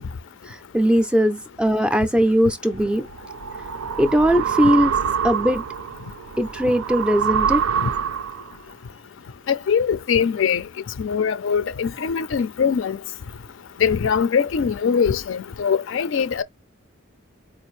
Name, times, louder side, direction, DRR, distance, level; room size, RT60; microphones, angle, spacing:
voice 1, 0.5-3.1 4.0-4.9 5.2-5.6 6.4-7.6, equal, 5° right, 0.4 m, -19 dB
sound 1, 2.8-8.6, right 8 dB, 85° right, 0.4 m, -26 dB
voice 2, 9.5-10.6 11.0-13.0 13.8-16.4, left 6 dB, 65° left, 0.4 m, -22 dB
4.2 x 2.5 x 3.0 m
head